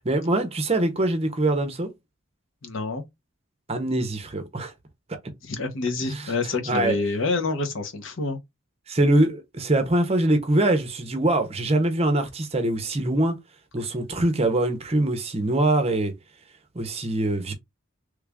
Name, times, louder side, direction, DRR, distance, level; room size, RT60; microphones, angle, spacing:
voice 1, 0.0-1.9 3.7-4.7 6.1-6.3 6.7-7.0 8.9-13.4 13.7-16.1 16.7-17.5, right 1 dB, 30° right, 0.6 m, -23 dB
voice 2, 2.6-3.0 5.4-8.4, left 3 dB, 70° left, 0.9 m, -27 dB
3.2 x 2.4 x 3.4 m
head